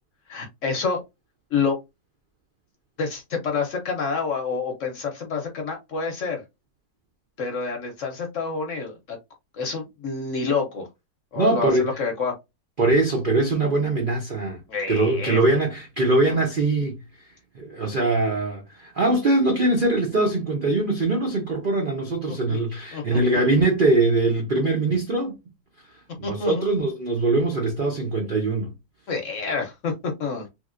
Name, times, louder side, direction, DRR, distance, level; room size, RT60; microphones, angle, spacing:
voice 1, 0.3-1.0 1.5-1.8 3.0-6.4 7.4-9.2 9.5-10.9 11.3-12.3 14.7-15.4 16.3-16.4 22.3-22.6 22.9-23.2 26.2-26.7 29.1-30.5, left 5 dB, 60° left, 0.9 m, -28 dB
voice 2, 11.3-11.9 12.8-14.6 14.9-17.0 17.5-25.3 26.2-28.7, right 2 dB, 70° right, 0.4 m, -22 dB
3.1 x 2.8 x 2.4 m
omnidirectional pair, 1.9 m